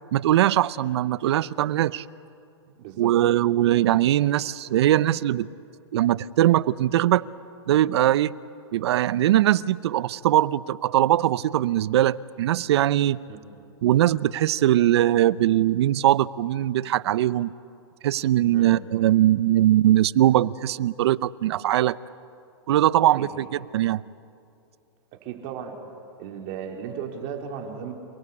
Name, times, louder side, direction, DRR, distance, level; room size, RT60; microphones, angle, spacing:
voice 1, 0.1-2.0 3.0-5.5 5.9-7.3 7.7-8.3 8.7-13.2 13.8-17.5 18.0-22.0 22.7-24.0, right 13 dB, 65° right, 19 dB, 0.7 m, -21 dB
voice 2, 2.8-3.1 13.3-13.4 18.5-18.7 23.2-23.3 25.2-25.8 26.2-27.9, right 8 dB, 45° right, 2 dB, 3.8 m, -35 dB
28.0 x 18.5 x 8.5 m, 2.6 s
hypercardioid pair, 140°, 15 cm